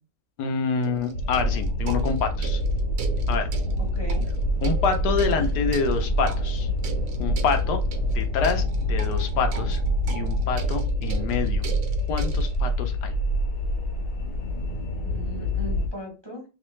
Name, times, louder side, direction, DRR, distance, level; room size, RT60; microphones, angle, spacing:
voice 1, 0.4-2.6 3.3-3.5 4.6-6.7 7.2-7.8 8.1-9.8 10.1-11.6 12.1-13.1, left 5 dB, 90° left, 7 dB, 1.3 m, -27 dB
sound 1, 0.8-12.6, right 6 dB, 65° right, 1.0 m, -40 dB
sound 2, 1.1-15.9, equal, 70° left, 1.5 m, -26 dB
voice 2, 3.9-4.2 5.2-5.5 15.0-16.4, equal, 25° right, 1 dB, 0.6 m, -39 dB
3.2 x 3.1 x 3.0 m, 0.32 s
omnidirectional pair, 1.7 m